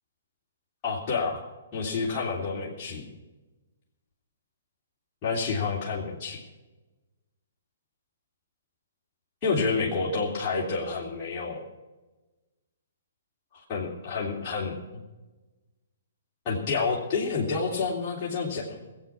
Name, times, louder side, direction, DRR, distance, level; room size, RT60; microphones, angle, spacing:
voice 1, 0.8-1.4 1.7-3.0 5.2-6.4 9.4-11.6 13.5-15.0 16.4-18.8, left 4 dB, 30° left, -6 dB, 3.4 m, -29 dB
19.5 x 8.8 x 6.0 m, 1.1 s
figure-of-eight pair, 125°, 0 cm